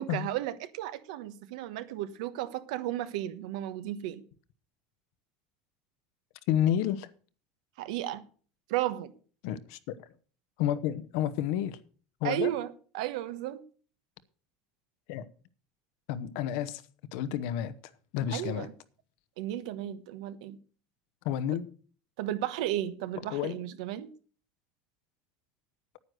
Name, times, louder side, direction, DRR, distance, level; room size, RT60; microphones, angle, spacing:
voice 1, 0.0-4.2 7.8-8.2 8.7-9.1 12.2-13.6 18.3-18.7 19.4-20.6 22.2-24.1, right 13 dB, 90° right, 1.1 m, -34 dB
voice 2, 6.5-7.1 9.4-9.8 10.6-11.8 12.2-12.5 15.1-15.3 16.1-16.8 17.1-17.7 18.1-18.7 21.2-21.7 23.3-23.6, left 10 dB, 75° left, 0.9 m, -30 dB
9.6 x 9.5 x 6.4 m
cardioid pair, 150°, 4 cm